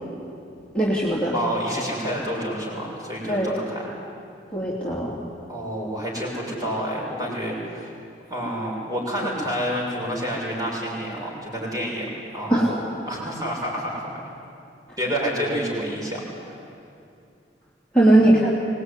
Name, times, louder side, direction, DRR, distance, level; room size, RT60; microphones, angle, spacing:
voice 1, 0.7-1.3 3.3-3.5 4.5-5.2 12.5-12.7 17.9-18.5, right 1 dB, 5° left, -7 dB, 3.0 m, -19 dB
voice 2, 1.3-3.9 5.5-7.9 8.3-14.1 15.0-16.6 18.0-18.3, equal, 20° right, -3 dB, 6.8 m, -29 dB
24.5 x 20.0 x 10.0 m, 2.6 s
head